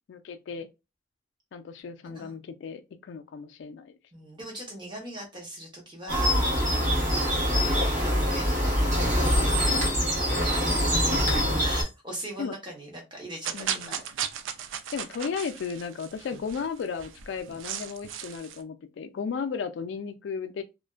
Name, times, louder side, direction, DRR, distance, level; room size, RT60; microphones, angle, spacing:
voice 1, 0.1-0.7 1.5-4.0 12.4-12.5 13.5-14.0 14.9-20.6, left 6 dB, 70° left, 0.3 m, -35 dB
voice 2, 2.0-2.3 4.1-10.1 10.5-10.9 11.3-14.1 16.2-16.4, right 1 dB, 25° right, 0.7 m, -41 dB
sound 1, 6.1-11.8, equal, 40° right, 1.0 m, -24 dB
sound 2, 13.4-18.6, right 9 dB, 80° right, 0.3 m, -36 dB
2.4 x 2.2 x 2.3 m
head